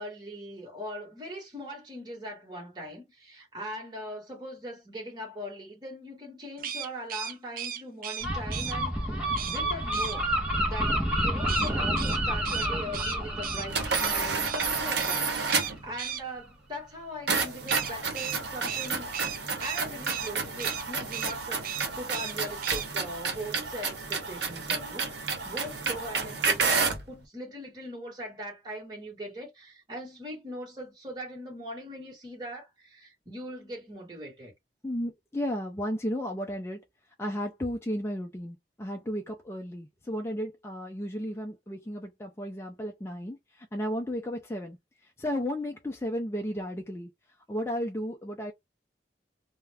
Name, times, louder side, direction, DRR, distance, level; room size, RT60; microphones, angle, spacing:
voice 1, 0.0-10.3 10.6-19.3 19.6-34.5, equal, 25° right, 1.2 m, -40 dB
sound 1, 6.6-8.8 9.4-9.6 9.9-10.2 11.5-14.1 14.4-14.7 15.0-15.2 15.5-16.2 17.7-20.3 20.6-20.8 21.1-21.4 21.6-22.3 22.6-22.9, right 9 dB, 50° right, 0.5 m, -36 dB
Gull seagull, 8.2-15.7, right 1 dB, 5° right, 0.8 m, -30 dB
sound 2, 13.7-15.9 17.3-27.1, right 4 dB, 70° right, 0.8 m, -30 dB
voice 2, 34.8-36.8 37.2-47.1 47.5-48.5, equal, 15° left, 0.4 m, -34 dB
2.4 x 2.1 x 3.3 m
head